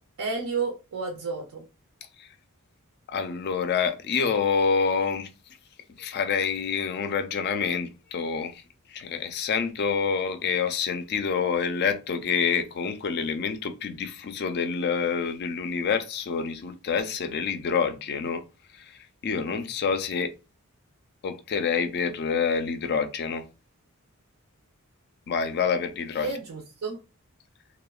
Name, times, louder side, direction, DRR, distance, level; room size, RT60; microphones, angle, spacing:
voice 1, 0.2-1.6 26.2-27.0, right 4 dB, 70° right, 0.5 m, -31 dB
voice 2, 3.1-5.3 6.0-8.6 8.9-18.4 18.7-20.3 21.2-23.5 25.3-26.3, left 6 dB, 50° left, 0.3 m, -27 dB
2.8 x 2.0 x 2.3 m
head